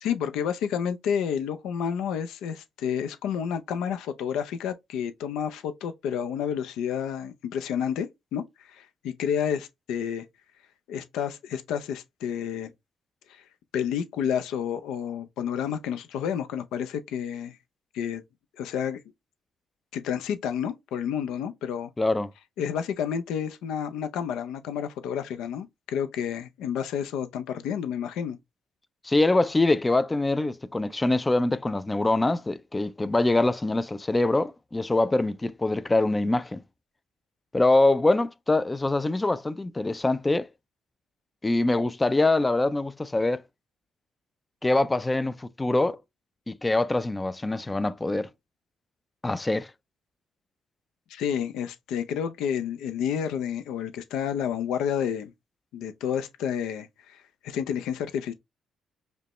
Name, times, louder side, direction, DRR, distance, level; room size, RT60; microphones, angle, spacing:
voice 1, 0.0-10.2 10.9-12.7 13.7-17.6 17.9-18.2 18.6-19.0 19.9-21.9 22.6-28.4 51.1-55.3 55.7-58.3, left 8 dB, 90° left, 0.5 m, -30 dB
voice 2, 22.0-22.3 29.0-36.6 37.5-40.5 41.4-43.4 44.6-46.0 46.5-48.3 49.2-49.7, left 2 dB, 20° left, 0.3 m, -24 dB
5.1 x 2.1 x 2.9 m
cardioid pair, 90°, 0 cm